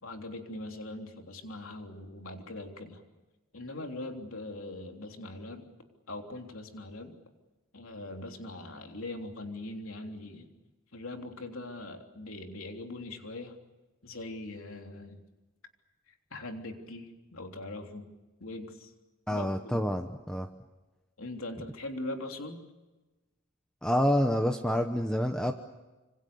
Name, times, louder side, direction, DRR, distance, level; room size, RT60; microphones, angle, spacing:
voice 1, 0.0-3.0 3.5-5.7 6.1-7.2 7.7-10.5 10.9-13.5 14.0-15.2 16.1-18.1 18.4-18.9 19.3-19.9 21.2-22.6, left 2 dB, 75° left, 3 dB, 3.4 m, -41 dB
voice 2, 19.3-20.5 23.8-25.5, equal, 5° left, 5 dB, 1.0 m, -28 dB
26.5 x 25.5 x 7.0 m, 1.1 s
head